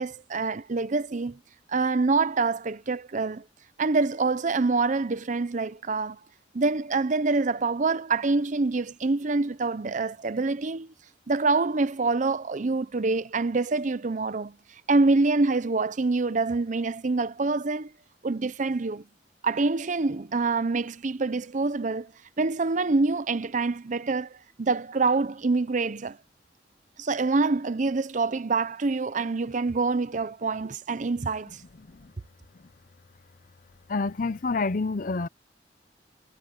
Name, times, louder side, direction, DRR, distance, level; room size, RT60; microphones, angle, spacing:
voice 1, 0.0-1.4 1.7-3.4 3.8-6.2 6.5-10.9 11.3-14.5 14.9-17.9 18.2-19.0 19.4-22.1 22.4-26.2 27.0-31.6, right 3 dB, 45° right, 0.6 m, -26 dB
voice 2, 31.8-32.1 33.9-35.3, left 3 dB, 50° left, 0.7 m, -28 dB
head